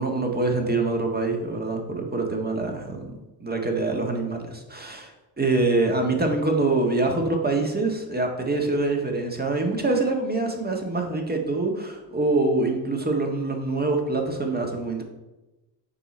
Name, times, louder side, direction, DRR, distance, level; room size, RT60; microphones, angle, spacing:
voice 1, 0.0-3.1 3.4-5.1 5.4-15.0, right 2 dB, 20° right, 2 dB, 1.6 m, -25 dB
7.0 x 4.5 x 4.3 m, 1.1 s
hypercardioid pair, 50°, 49 cm